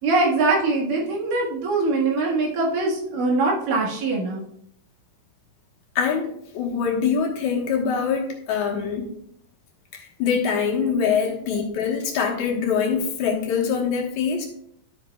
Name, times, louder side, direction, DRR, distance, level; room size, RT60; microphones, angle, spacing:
voice 1, 0.0-4.4 11.5-11.6, right 3 dB, 90° right, -3 dB, 3.4 m, -22 dB
voice 2, 6.0-9.1 10.2-14.5, left 6 dB, 70° left, 0 dB, 2.6 m, -24 dB
12.0 x 7.6 x 2.3 m, 0.70 s
omnidirectional pair, 3.7 m